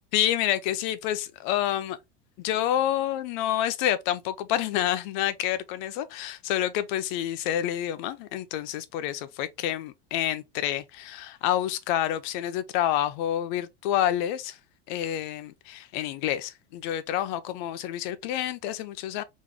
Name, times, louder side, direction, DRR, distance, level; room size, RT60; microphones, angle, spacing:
voice 1, 0.1-2.0 2.4-14.6 14.9-19.2, left 12 dB, 50° left, 0.6 m, -28 dB
3.8 x 3.1 x 3.5 m
supercardioid pair, 175°, 31 cm